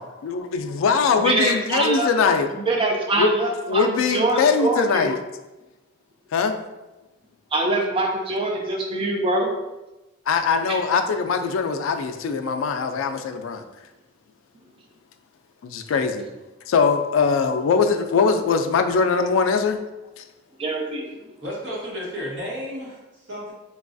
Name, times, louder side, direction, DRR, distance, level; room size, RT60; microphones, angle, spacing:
voice 1, 0.2-2.5 3.2-3.3 3.7-5.2 6.3-6.5 10.3-13.6 15.6-16.3 16.7-19.8 20.2-20.3, left 5 dB, 75° left, 7 dB, 0.3 m, -21 dB
voice 2, 1.2-2.1 2.7-5.1 7.5-9.5 10.7-10.8 20.6-21.1, right 2 dB, 25° right, 1 dB, 0.4 m, -23 dB
voice 3, 21.4-23.5, equal, 60° right, -4 dB, 1.0 m, -32 dB
3.9 x 2.3 x 2.5 m, 1.0 s
head